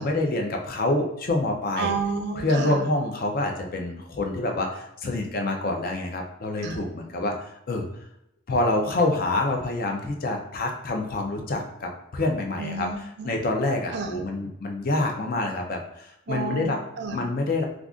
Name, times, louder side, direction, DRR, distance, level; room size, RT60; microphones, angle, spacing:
voice 1, 0.0-1.9 2.4-7.9 8.5-12.9 13.2-16.8 17.1-17.6, left 2 dB, 45° left, 2 dB, 0.5 m, -27 dB
voice 2, 1.8-2.8 6.6-6.8 12.6-13.4 13.9-14.2 16.3-17.2, right 4 dB, 55° right, 5 dB, 0.4 m, -31 dB
2.4 x 2.4 x 3.6 m, 0.80 s
head